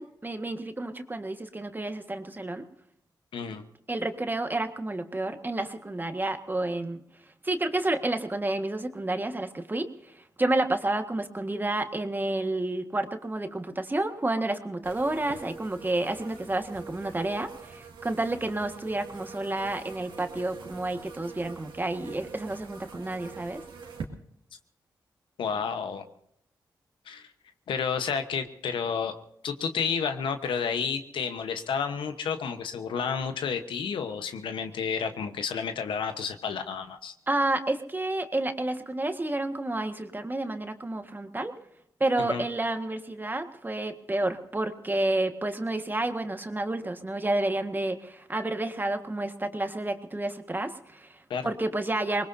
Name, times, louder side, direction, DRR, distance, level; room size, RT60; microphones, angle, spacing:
voice 1, 0.0-2.6 3.9-7.0 7.4-23.6 37.3-41.5 42.0-52.2, right 2 dB, 25° right, 6 dB, 1.7 m, -30 dB
voice 2, 3.3-3.6 25.4-26.0 27.1-27.3 27.7-29.1 29.4-37.1 42.2-42.4 51.3-51.5, left 6 dB, 85° left, 8 dB, 1.1 m, -31 dB
sound 1, 14.8-24.0, right 5 dB, 85° right, 2.0 m, -44 dB
24.0 x 20.5 x 2.8 m, 0.73 s
cardioid pair, 55°, 8 cm